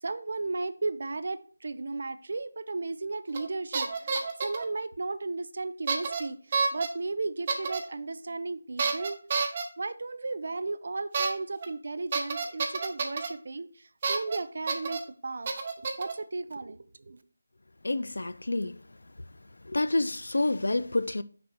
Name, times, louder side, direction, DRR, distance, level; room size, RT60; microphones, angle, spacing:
voice 1, 0.0-9.2 9.8-15.5 15.8-17.2, right 3 dB, 55° right, 0.5 m, -35 dB
sound 1, 3.3-3.5 3.7-4.6 5.9-6.2 6.5-6.9 7.5-7.8 8.8-9.6 11.1-11.3 11.6-11.7 12.1-13.3 14.0-14.4 14.7-15.0 15.5-16.1, right 4 dB, 30° right, 0.8 m, -29 dB
voice 2, 17.8-18.7 19.7-21.2, left 2 dB, 75° left, 0.4 m, -28 dB
6.1 x 4.5 x 4.0 m
figure-of-eight pair, 165°, 0 cm